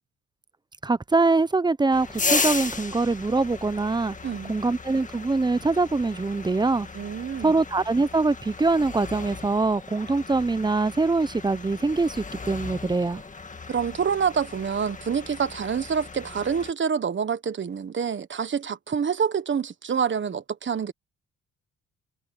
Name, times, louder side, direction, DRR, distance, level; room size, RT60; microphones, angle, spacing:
voice 1, 0.8-4.2 4.5-6.9 7.4-13.2, right 3 dB, 15° right, 0.7 m, -23 dB
sound 1, 1.9-16.7, left 4 dB, 25° left, 1.8 m, -35 dB
voice 2, 4.2-4.6 6.9-7.5 13.7-20.9, right 6 dB, 40° right, 1.4 m, -27 dB
cardioid pair, 90°, 30 cm